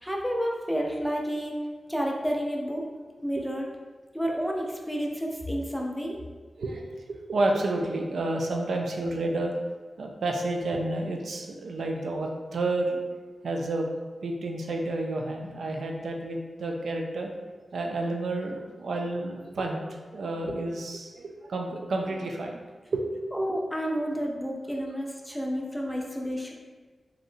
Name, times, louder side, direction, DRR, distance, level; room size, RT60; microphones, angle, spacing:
voice 1, 0.0-1.5 1.9-2.8 3.2-3.7 4.1-6.2 23.3-26.5, equal, ahead, -1 dB, 0.4 m, -30 dB
voice 2, 7.3-9.5 10.0-13.0 13.4-13.9 14.2-17.3 17.7-22.6 22.9-23.0, right 2 dB, 85° right, 1 dB, 0.3 m, -30 dB
3.0 x 2.7 x 2.6 m, 1.4 s
wide cardioid pair, 115°, 0 cm